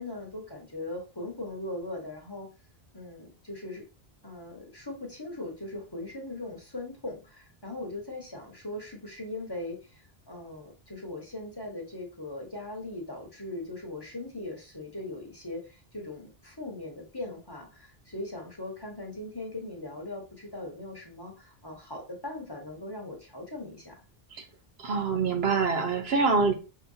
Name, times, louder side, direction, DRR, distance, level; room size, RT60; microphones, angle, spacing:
voice 1, 0.0-2.5 2.9-3.8 4.2-24.0, left 2 dB, 25° left, -1 dB, 1.1 m, -39 dB
voice 2, 24.8-26.5, right 4 dB, 75° right, 4 dB, 1.1 m, -25 dB
5.6 x 2.9 x 2.7 m, 0.32 s
omnidirectional pair, 1.1 m